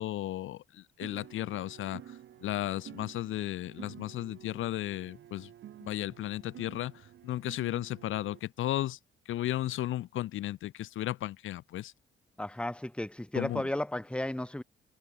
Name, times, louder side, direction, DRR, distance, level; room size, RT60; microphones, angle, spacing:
voice 1, 0.0-2.0 2.4-5.5 5.8-6.9 7.2-9.0 9.3-11.9 13.3-13.6, left 14 dB, 80° left, 3.0 m, -34 dB
sound 1, 1.0-8.4, right 11 dB, 70° right, 6.5 m, -51 dB
voice 2, 12.4-14.6, left 1 dB, 5° left, 2.1 m, -34 dB
cardioid pair, 90°, 20 cm